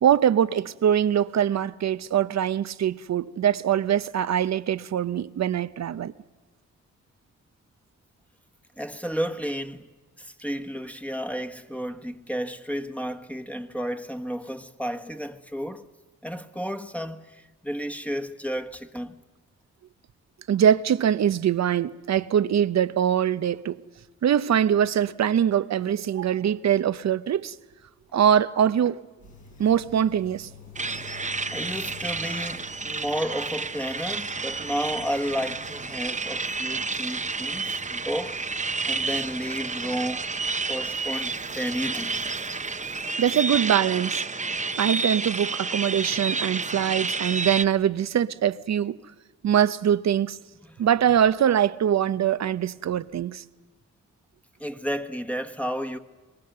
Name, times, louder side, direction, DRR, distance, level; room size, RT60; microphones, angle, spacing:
voice 1, 0.0-6.1 20.5-23.8 24.2-27.5 28.1-29.0 29.6-30.5 43.2-44.3 44.8-49.0 49.4-50.4 50.8-53.4, right 9 dB, 65° right, 0.7 m, -23 dB
voice 2, 8.8-9.9 10.2-15.9 16.2-19.2 31.5-38.4 38.9-40.3 40.7-42.4 50.7-50.8 54.6-56.0, equal, 5° left, 1.3 m, -32 dB
sound 1, 29.2-43.0, left 2 dB, 75° left, 5.6 m, -50 dB
sound 2, 30.8-47.6, right 4 dB, 25° right, 0.8 m, -30 dB
24.5 x 21.5 x 6.7 m
cardioid pair, 50°, 30 cm